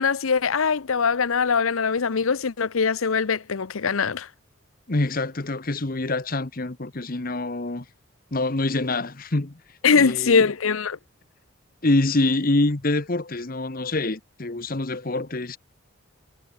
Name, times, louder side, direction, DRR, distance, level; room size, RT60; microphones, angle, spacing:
voice 1, 0.0-4.3 9.8-11.0, left 5 dB, 85° left, 0.7 m, -22 dB
voice 2, 4.9-7.8 8.3-9.6 9.9-10.5 11.8-15.6, left 2 dB, 45° left, 1.2 m, -25 dB
head